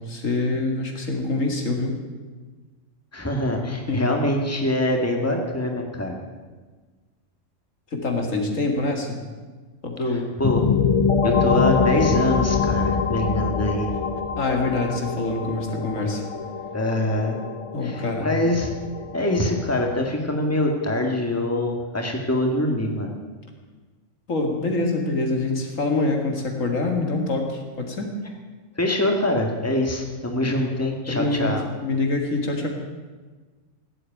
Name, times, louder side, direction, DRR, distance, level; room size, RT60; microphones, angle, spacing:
voice 1, 0.0-2.0 3.9-4.1 7.9-9.2 9.8-10.4 14.4-16.2 17.7-18.3 24.3-28.1 30.4-30.5 31.1-31.5 31.8-32.7, left 2 dB, 85° left, 2 dB, 2.6 m, -25 dB
voice 2, 3.1-6.2 10.4-10.6 11.2-13.9 16.7-17.4 17.8-18.7 19.1-23.1 28.8-31.6, left 1 dB, 10° left, 2 dB, 1.9 m, -24 dB
sound 1, 10.4-20.0, left 5 dB, 40° left, 0.5 m, -25 dB
16.0 x 8.5 x 9.2 m, 1.4 s
omnidirectional pair, 1.3 m